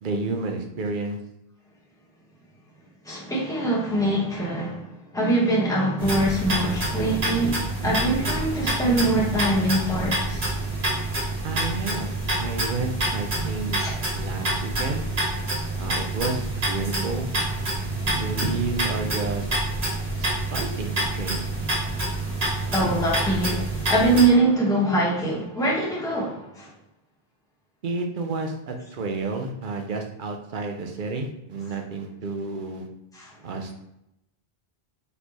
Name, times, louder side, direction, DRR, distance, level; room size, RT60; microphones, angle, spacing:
voice 1, 0.0-1.2 11.4-12.1 12.4-13.9 14.1-15.0 15.8-17.3 18.1-19.5 20.2-21.4 27.8-32.9 33.4-33.8, right 3 dB, 55° right, 0.8 m, -31 dB
voice 2, 3.0-10.4 13.8-14.0 22.7-26.7 33.1-33.3, right 2 dB, 5° left, 1.1 m, -23 dB
sound 1, 6.0-24.2, right 2 dB, 80° right, 1.9 m, -27 dB
4.2 x 3.4 x 2.9 m
omnidirectional pair, 1.0 m